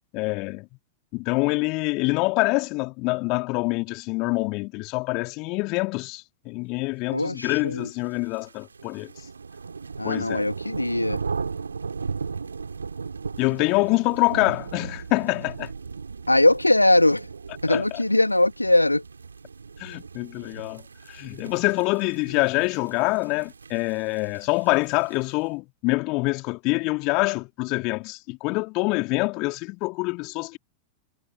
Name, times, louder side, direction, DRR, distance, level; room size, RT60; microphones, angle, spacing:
voice 1, 0.1-0.7 1.1-9.1 10.0-10.4 13.4-15.7 17.7-17.8 19.8-20.8 21.1-30.6, left 26 dB, 40° left, 3.6 m, -25 dB
voice 2, 7.1-7.9 10.0-11.2 16.3-17.3 17.6-19.0, left 1 dB, 85° left, 2.0 m, -21 dB
sound 1, 7.9-25.4, right 5 dB, 75° right, 4.1 m, -37 dB
figure-of-eight pair, 90°, 0 cm